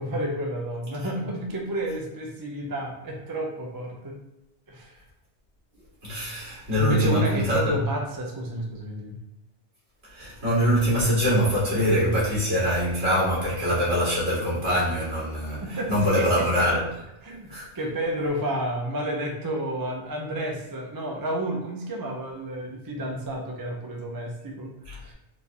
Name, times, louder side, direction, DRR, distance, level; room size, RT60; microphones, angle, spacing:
voice 1, 0.0-4.2 4.7-5.0 6.8-9.2 15.6-16.7 17.2-17.5 17.7-25.1, right 1 dB, 30° right, 0 dB, 0.4 m, -31 dB
voice 2, 6.0-7.8 10.1-16.9 17.5-17.7 24.9-25.1, equal, 65° right, -6 dB, 2.0 m, -24 dB
4.1 x 2.7 x 3.4 m, 0.90 s
omnidirectional pair, 1.2 m